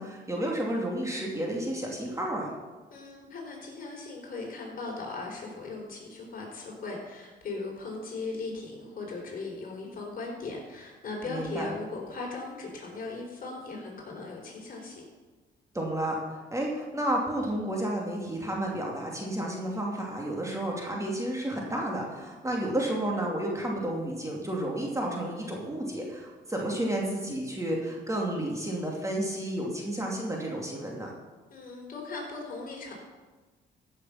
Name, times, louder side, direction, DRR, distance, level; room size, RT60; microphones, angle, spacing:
voice 1, 0.0-2.5 11.3-11.7 15.7-31.1, right 1 dB, 15° right, -2 dB, 2.4 m, -31 dB
voice 2, 2.9-15.0 31.5-32.9, left 3 dB, 45° left, -1 dB, 4.4 m, -38 dB
15.0 x 6.7 x 5.8 m, 1.3 s
cardioid pair, 90°, 20 cm